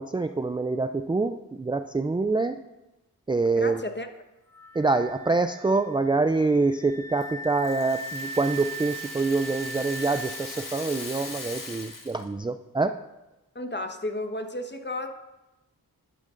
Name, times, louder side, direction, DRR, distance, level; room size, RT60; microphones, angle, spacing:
voice 1, 0.0-2.6 3.3-3.8 4.7-13.0, right 3 dB, 15° right, 9 dB, 0.3 m, -26 dB
voice 2, 3.6-4.1 13.5-15.1, left 1 dB, 30° left, 6 dB, 1.1 m, -32 dB
Wind instrument woodwind instrument, 4.5-12.0, right 2 dB, 5° left, 1.1 m, -40 dB
Rattle (instrument), 7.2-12.3, left 3 dB, 60° left, 1.8 m, -40 dB
12.0 x 12.0 x 2.5 m, 1.0 s
wide cardioid pair, 50°, 37 cm